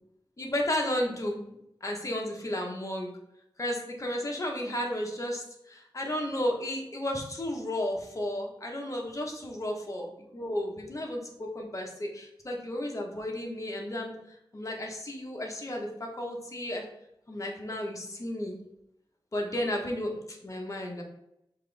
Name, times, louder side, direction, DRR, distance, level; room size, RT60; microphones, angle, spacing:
voice 1, 0.4-1.5 1.8-3.1 3.6-14.2 14.5-16.9 17.3-18.6 19.3-21.0, left 1 dB, 35° left, 0 dB, 0.9 m, -33 dB
5.7 x 2.5 x 3.3 m, 0.80 s
wide cardioid pair, 65°, 9 cm